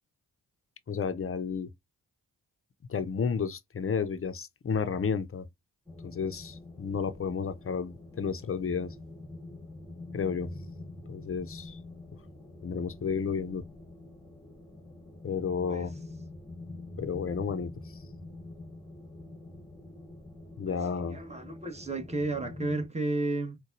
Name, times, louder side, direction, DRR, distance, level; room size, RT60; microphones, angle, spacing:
voice 1, 0.9-1.7 2.9-5.5 6.0-8.9 10.1-10.5 11.1-11.8 12.6-13.6 15.2-15.9 17.0-17.7 20.6-21.2, left 6 dB, 35° left, 0.6 m, -32 dB
sound 1, 5.9-22.9, left 2 dB, 10° left, 1.1 m, -46 dB
voice 2, 20.7-23.6, right 2 dB, 15° right, 1.2 m, -33 dB
3.9 x 2.3 x 2.6 m
supercardioid pair, 40°, 40 cm